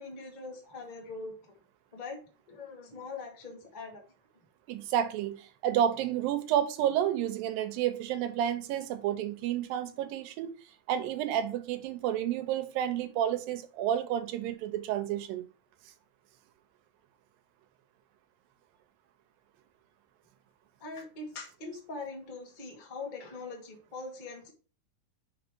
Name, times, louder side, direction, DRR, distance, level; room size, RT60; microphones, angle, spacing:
voice 1, 0.0-1.3 1.9-2.2 2.5-4.0 20.8-24.5, left 3 dB, 20° left, 1.1 m, -42 dB
voice 2, 4.7-10.5 10.9-15.4, right 10 dB, 90° right, 2.6 m, -30 dB
5.8 x 5.1 x 4.6 m
omnidirectional pair, 4.0 m